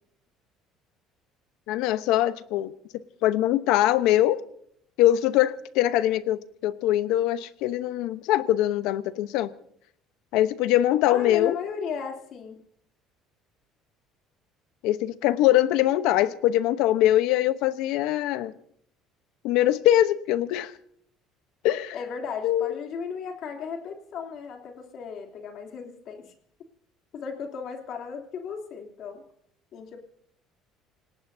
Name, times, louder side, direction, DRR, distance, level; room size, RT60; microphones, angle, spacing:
voice 1, 1.7-2.7 3.2-4.4 5.0-9.5 10.3-11.6 14.8-18.5 19.4-20.7 21.6-21.9 22.4-22.7, left 13 dB, 80° left, 12 dB, 0.9 m, -22 dB
voice 2, 11.0-12.6 21.9-26.3 27.1-29.2 29.7-30.0, left 6 dB, 55° left, 2 dB, 3.1 m, -35 dB
27.5 x 18.5 x 2.8 m, 0.67 s
cardioid pair, 130°, 0 cm